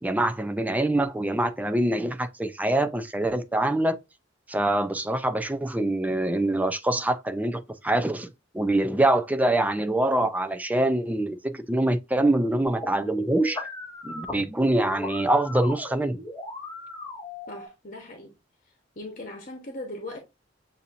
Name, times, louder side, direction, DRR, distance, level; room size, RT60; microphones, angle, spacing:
voice 1, 0.0-4.0 4.5-13.6 14.0-16.2, right 1 dB, 10° right, 0.4 m, -24 dB
sound 1, 12.7-17.7, left 2 dB, 15° left, 1.8 m, -38 dB
voice 2, 17.5-18.4 19.0-20.2, left 1 dB, 45° left, 1.0 m, -39 dB
7.0 x 2.7 x 2.5 m
head